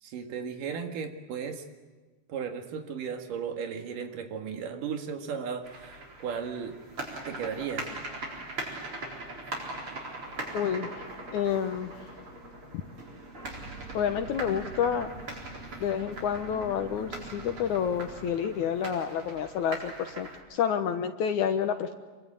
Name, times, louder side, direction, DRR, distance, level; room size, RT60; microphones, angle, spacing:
voice 1, 0.0-1.6 2.3-6.8 7.3-7.9, right 6 dB, 85° right, 5 dB, 3.5 m, -35 dB
sound 1, 5.6-20.4, right 2 dB, 40° right, 5.0 m, -41 dB
sound 2, 8.7-18.3, right 2 dB, 25° right, 2.6 m, -47 dB
voice 2, 10.5-11.0 11.3-11.9 13.9-15.1 15.8-21.9, left 8 dB, 70° left, 7 dB, 2.4 m, -29 dB
26.0 x 23.0 x 9.0 m, 1.3 s
omnidirectional pair, 3.7 m